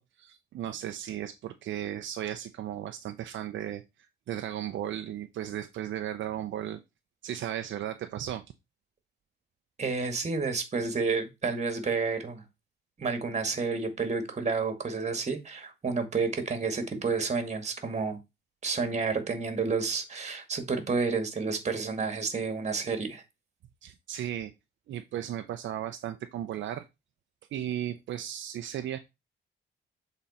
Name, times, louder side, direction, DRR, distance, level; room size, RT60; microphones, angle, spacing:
voice 1, 0.0-6.8 7.2-8.4 23.8-24.5 24.9-26.8 27.5-29.0, right 11 dB, 70° right, 0.6 m, -35 dB
voice 2, 9.8-12.4 13.0-18.2 18.6-23.2, right 4 dB, 35° right, 2.0 m, -30 dB
7.4 x 4.0 x 4.2 m
cardioid pair, 90°, 20 cm